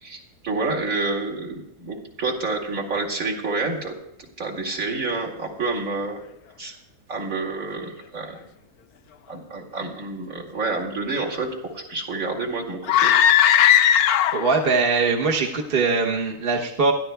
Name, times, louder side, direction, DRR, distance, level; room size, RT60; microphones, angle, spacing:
voice 1, 0.0-3.9 4.4-6.2 6.6-6.8 7.1-8.4 9.3-13.1, right 3 dB, 55° right, -3 dB, 2.7 m, -28 dB
sound 1, 12.8-14.6, left 10 dB, 70° left, 1.1 m, -17 dB
voice 2, 14.3-16.9, right 4 dB, 40° right, 0 dB, 1.1 m, -21 dB
21.0 x 14.0 x 2.3 m, 0.80 s
omnidirectional pair, 1.7 m